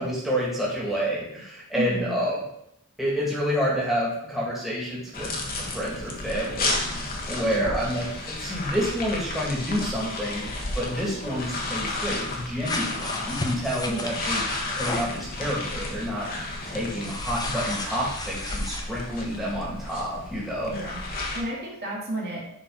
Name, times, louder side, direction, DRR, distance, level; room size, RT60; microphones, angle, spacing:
voice 1, 0.0-2.4 3.0-5.3 5.6-6.8 7.3-10.5 10.7-16.3 16.7-20.8, equal, ahead, -6 dB, 2.4 m, -29 dB
voice 2, 1.7-2.2 7.4-7.9 13.9-14.2 20.6-21.0 21.3-22.4, right 1 dB, 50° right, -4 dB, 2.0 m, -32 dB
sound 1, 5.1-21.4, left 2 dB, 40° left, 1.5 m, -32 dB
sound 2, 12.6-15.2 17.0-18.8, left 2 dB, 20° left, 0.8 m, -33 dB
10.0 x 4.6 x 4.1 m, 0.78 s
head